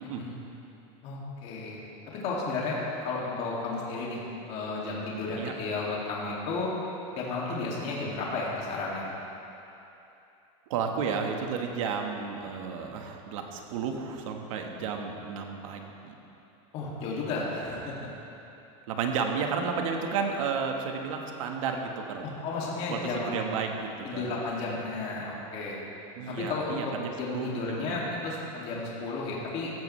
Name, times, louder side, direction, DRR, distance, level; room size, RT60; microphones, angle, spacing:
voice 1, 1.0-1.8 2.1-4.2 4.5-6.7 7.2-9.0 15.0-15.1 16.7-18.1 22.4-23.4 24.0-25.8 26.3-26.8 27.2-29.7, left 3 dB, 40° left, -4 dB, 2.5 m, -33 dB
voice 2, 10.7-16.1 18.9-22.2 22.9-24.4 26.2-28.1, right 6 dB, 75° right, 3 dB, 1.5 m, -32 dB
15.5 x 13.0 x 3.3 m, 2.9 s
supercardioid pair, 165°, 17 cm